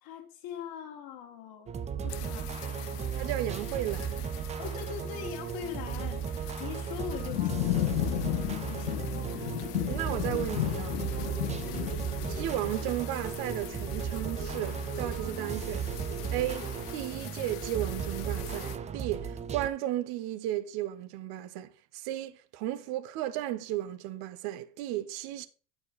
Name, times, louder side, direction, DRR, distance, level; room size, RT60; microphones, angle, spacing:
voice 1, 0.0-1.8 2.0-2.5 4.6-9.5 11.6-12.0, left 9 dB, 50° left, 2.1 m, -42 dB
sound 1, 1.7-19.7, right 7 dB, 15° right, 0.4 m, -36 dB
sound 2, 2.1-18.8, left 17 dB, 85° left, 0.7 m, -37 dB
voice 2, 3.2-4.3 9.8-11.0 12.3-15.9 16.3-25.5, right 13 dB, 55° right, 0.9 m, -34 dB
sound 3, 9.9-18.6, left 3 dB, 15° left, 1.3 m, -46 dB
9.6 x 4.7 x 3.9 m
supercardioid pair, 110°, 46 cm